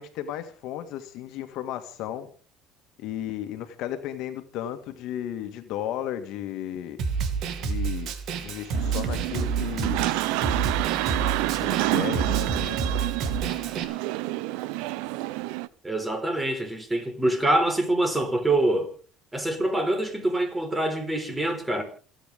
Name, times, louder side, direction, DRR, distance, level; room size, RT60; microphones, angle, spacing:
voice 1, 0.0-2.3 3.0-7.0 7.6-8.1 8.4-10.0 11.6-12.8, left 11 dB, 65° left, 1.9 m, -34 dB
Snare drum, 7.0-13.8, right 5 dB, 60° right, 2.8 m, -29 dB
sound 1, 8.7-15.7, right 17 dB, 80° right, 0.8 m, -28 dB
voice 2, 15.8-18.9 19.3-21.8, right 1 dB, 10° right, 4.4 m, -25 dB
27.5 x 9.4 x 3.8 m
cardioid pair, 120°, 0 cm